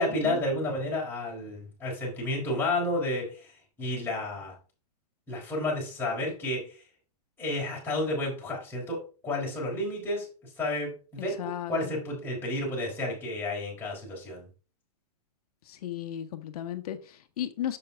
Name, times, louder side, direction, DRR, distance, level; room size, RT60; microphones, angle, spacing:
voice 1, 0.0-4.5 5.3-6.8 7.4-14.5, left 1 dB, 10° left, -5 dB, 4.2 m, -31 dB
voice 2, 11.2-11.8 15.7-17.8, left 11 dB, 65° left, 9 dB, 1.3 m, -35 dB
6.9 x 6.6 x 3.4 m, 0.34 s
hypercardioid pair, 135°, 21 cm